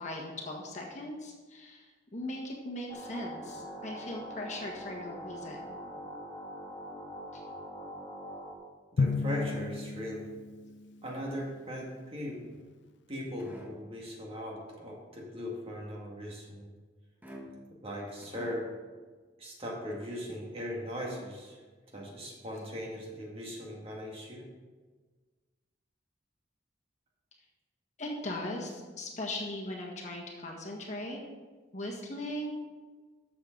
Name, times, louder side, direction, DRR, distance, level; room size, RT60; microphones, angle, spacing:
voice 1, 0.0-1.8 2.1-5.7 7.3-7.4 28.0-31.2 31.7-32.6, left 1 dB, 40° left, -1 dB, 1.5 m, -39 dB
sound 1, 2.9-8.6, equal, 20° left, 1.3 m, -43 dB
voice 2, 8.9-10.2 11.0-12.4 13.1-16.7 17.8-18.7 19.4-21.6 21.9-24.4, equal, 30° right, -2 dB, 2.0 m, -39 dB
Drum, 9.0-11.2, left 4 dB, 80° left, 0.5 m, -33 dB
sound 2, 12.4-13.0 13.4-14.0 17.2-17.8 18.2-18.9, equal, 10° right, 1.2 m, -48 dB
13.0 x 6.9 x 3.9 m, 1.4 s
head